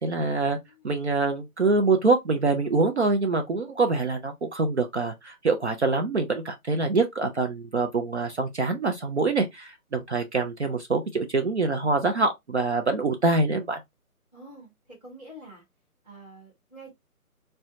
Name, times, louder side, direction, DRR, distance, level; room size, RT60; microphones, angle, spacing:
voice 1, 0.0-0.6 0.8-13.8, right 3 dB, 50° right, 0.5 m, -25 dB
voice 2, 0.5-1.0 14.3-15.6 16.0-16.9, right 1 dB, 5° right, 0.8 m, -47 dB
4.3 x 2.2 x 2.5 m
figure-of-eight pair, 150°, 44 cm